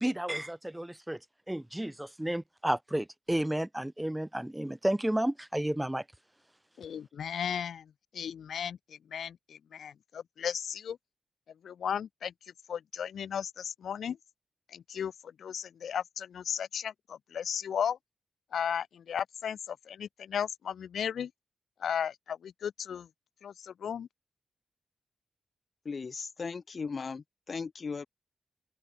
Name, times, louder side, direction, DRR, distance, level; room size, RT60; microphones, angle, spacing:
voice 1, 0.0-1.2 1.5-6.0, right 1 dB, 5° right, 0.4 m, -32 dB
voice 2, 6.8-11.0 11.6-12.3 12.7-14.2 14.7-15.1 15.4-18.0 18.5-21.3 21.8-23.1 23.4-24.1, left 8 dB, 85° left, 0.4 m, -35 dB
voice 3, 25.8-28.1, left 5 dB, 40° left, 1.1 m, -37 dB
open air
wide cardioid pair, 165°, 0 cm